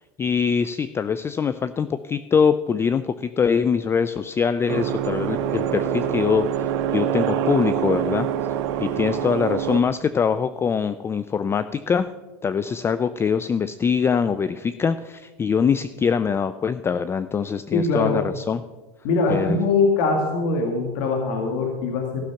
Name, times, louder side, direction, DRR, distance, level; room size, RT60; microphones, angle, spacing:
voice 1, 0.2-8.3 8.8-12.1 12.4-18.6 19.3-19.6, left 6 dB, 15° left, 13 dB, 0.3 m, -23 dB
sound 1, 4.7-9.8, right 9 dB, 75° right, 0.9 m, -25 dB
voice 2, 17.7-18.2 19.0-22.3, left 3 dB, 65° left, 2 dB, 1.8 m, -22 dB
15.0 x 6.3 x 5.7 m, 1.2 s
supercardioid pair, 125°, 14 cm